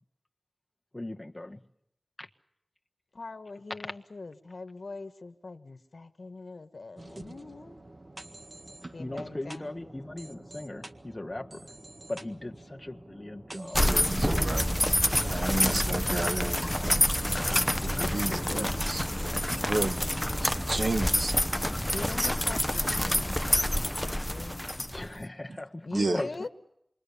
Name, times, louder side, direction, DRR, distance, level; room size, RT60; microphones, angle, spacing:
voice 1, 0.9-1.6 2.2-2.3 3.8-3.9 9.0-11.8 12.1-14.0 15.5-16.3 17.9-19.0 24.8-26.5, left 1 dB, 25° left, 1.5 m, -39 dB
voice 2, 3.1-8.1 8.5-9.7 21.9-23.4 24.3-24.7 25.8-26.5, left 3 dB, 80° left, 1.6 m, -42 dB
sound 1, 7.0-20.8, right 2 dB, 50° right, 1.8 m, -46 dB
sound 2, 13.7-25.2, left 1 dB, 10° left, 0.9 m, -28 dB
voice 3, 13.9-14.6 15.1-16.9 18.1-19.0 19.6-20.0 20.4-21.3 25.9-26.2, right 2 dB, 70° right, 1.4 m, -32 dB
sound 3, 14.2-16.3, right 1 dB, 15° right, 1.1 m, -33 dB
27.5 x 23.0 x 7.1 m
wide cardioid pair, 65°, 0 cm